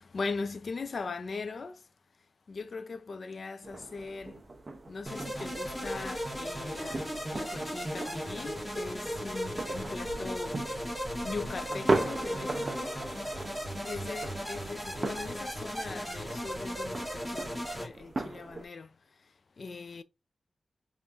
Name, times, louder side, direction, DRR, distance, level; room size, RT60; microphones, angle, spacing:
voice 1, 0.0-1.9 2.5-4.5 4.9-13.0 13.8-20.0, left 4 dB, 55° left, 0.4 m, -40 dB
sound 1, 3.6-18.6, right 3 dB, 35° right, 0.6 m, -38 dB
sound 2, 5.1-17.9, equal, 5° left, 1.9 m, -36 dB
3.6 x 3.4 x 2.5 m
wide cardioid pair, 125°, 0 cm